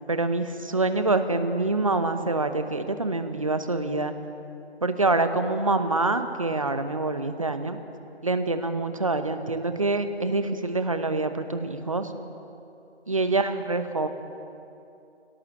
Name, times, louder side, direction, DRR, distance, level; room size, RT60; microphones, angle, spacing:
voice 1, 0.1-4.1 4.8-7.8 8.2-12.1 13.1-14.1, right 2 dB, 30° right, 9 dB, 1.0 m, -26 dB
22.0 x 17.5 x 7.3 m, 2.8 s
figure-of-eight pair, 165°, 34 cm